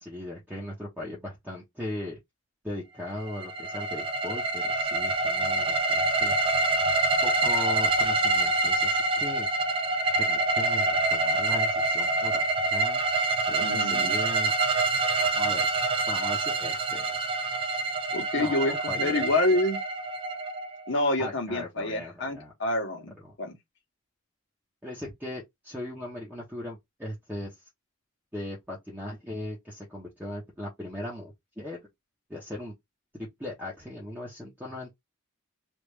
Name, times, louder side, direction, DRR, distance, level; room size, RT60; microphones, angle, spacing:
voice 1, 0.0-2.2 2.6-6.3 7.2-9.5 10.2-12.5 12.7-13.0 13.5-14.5 15.2-15.7 16.1-17.2 18.3-19.3 21.2-22.5 24.8-27.6 28.3-31.8 32.3-32.7 33.1-35.0, left 1 dB, 10° right, 0.9 m, -38 dB
sound 1, 3.2-21.0, right 2 dB, 25° right, 0.5 m, -26 dB
voice 2, 13.6-14.1 18.1-19.8 20.9-23.6, left 1 dB, 60° left, 1.1 m, -27 dB
3.4 x 2.5 x 3.2 m
head